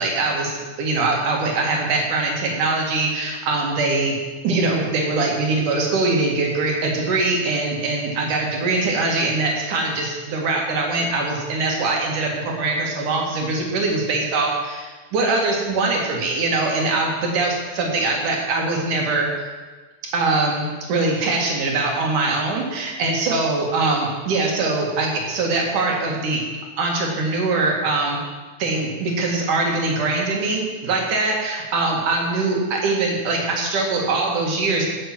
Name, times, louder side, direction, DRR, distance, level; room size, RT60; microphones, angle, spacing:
voice 1, 0.0-0.5 0.8-4.1 4.4-19.5 20.1-26.4 26.8-28.2 28.6-34.9, right 3 dB, 85° right, 0 dB, 3.6 m, -22 dB
16.5 x 6.7 x 6.1 m, 1.3 s
omnidirectional pair, 3.5 m